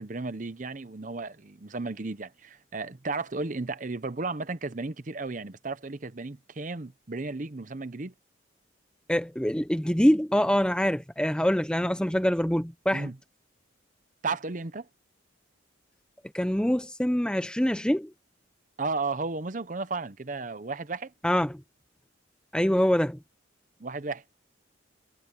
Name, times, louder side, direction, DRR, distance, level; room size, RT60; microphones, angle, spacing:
voice 1, 0.0-8.1 12.9-13.2 14.2-14.9 18.8-21.1 23.8-24.2, right 3 dB, 40° right, 0.7 m, -34 dB
voice 2, 9.1-13.1 16.3-18.1 21.2-21.6 22.5-23.2, equal, 5° left, 0.7 m, -25 dB
head